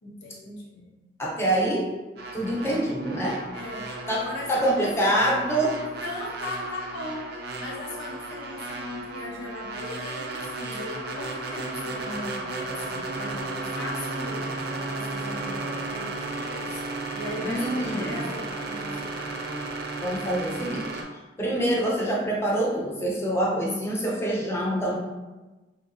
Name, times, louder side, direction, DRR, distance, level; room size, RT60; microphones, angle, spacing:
voice 1, 0.0-0.9 3.5-5.2 5.9-19.3, left 1 dB, 85° left, -3 dB, 0.7 m, -38 dB
voice 2, 1.2-1.9 2.3-3.4 4.1-5.8 17.4-18.2 20.0-20.9 21.4-25.0, right 1 dB, 15° left, -4 dB, 0.6 m, -25 dB
sound 1, 2.2-21.0, right 2 dB, 60° right, 0.4 m, -34 dB
3.5 x 2.8 x 2.6 m, 1.1 s
head